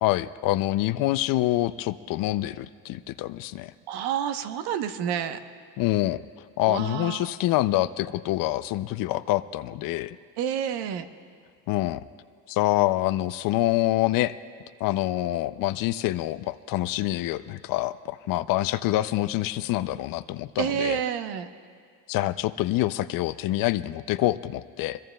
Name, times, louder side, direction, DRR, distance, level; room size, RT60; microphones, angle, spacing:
voice 1, 0.0-3.7 5.8-6.2 6.6-10.2 11.7-12.0 12.5-14.3 14.8-21.0 22.1-25.0, left 16 dB, 55° left, 14 dB, 0.5 m, -26 dB
voice 2, 3.9-5.4 6.7-7.3 10.4-11.1 20.6-21.5, right 8 dB, 70° right, 9 dB, 1.0 m, -29 dB
25.0 x 22.0 x 2.2 m, 2.1 s
cardioid pair, 130°, 41 cm